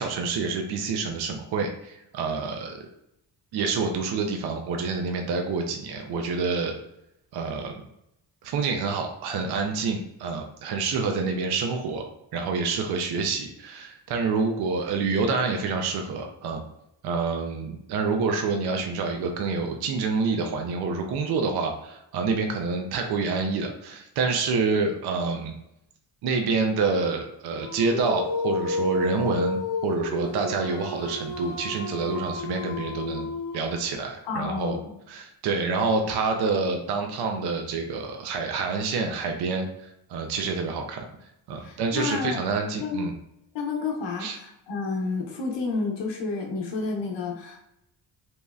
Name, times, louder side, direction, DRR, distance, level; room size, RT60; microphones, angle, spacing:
voice 1, 0.0-2.8 3.5-6.7 7.3-7.8 8.4-16.6 17.0-25.5 26.2-34.8 35.1-39.7 40.1-41.0 41.5-43.1 44.2-44.4, right 4 dB, 65° right, 3 dB, 0.5 m, -27 dB
Dog, 27.6-33.9, left 3 dB, 50° left, 0.5 m, -31 dB
voice 2, 34.2-35.0 41.6-42.4 42.8-43.1 43.5-47.6, left 4 dB, 80° left, 2 dB, 0.8 m, -30 dB
2.9 x 2.7 x 2.3 m, 0.82 s
cardioid pair, 100°, 43 cm